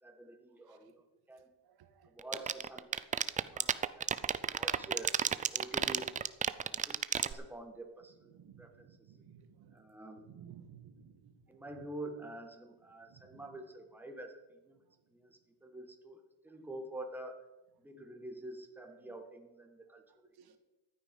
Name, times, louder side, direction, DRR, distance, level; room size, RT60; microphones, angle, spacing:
voice 1, 0.0-1.5 2.0-5.1 5.5-6.2 6.5-9.1 9.7-10.3 11.5-14.8 15.1-17.5 17.8-20.6, right 1 dB, 5° right, 4 dB, 1.5 m, -48 dB
sound 1, 2.2-7.3, right 7 dB, 20° right, 0.3 m, -30 dB
voice 2, 8.2-9.8 10.2-11.1 11.7-11.9 13.1-13.6 20.4-20.5, right 9 dB, 55° right, 10 dB, 1.4 m, -56 dB
14.0 x 9.3 x 5.3 m, 1.1 s
cardioid pair, 115°, 44 cm